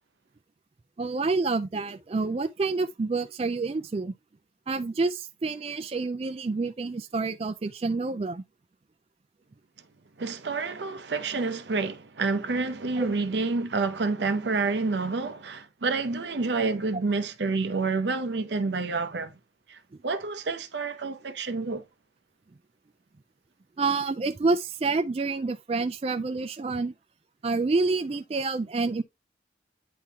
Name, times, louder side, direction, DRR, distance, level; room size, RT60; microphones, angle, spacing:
voice 1, 1.0-4.1 4.7-8.4 13.0-13.1 23.8-26.9 27.4-29.0, right 3 dB, 35° right, 0.3 m, -28 dB
voice 2, 10.2-19.4 19.7-21.8, right 3 dB, 80° right, 0.7 m, -28 dB
9.4 x 3.6 x 2.8 m
head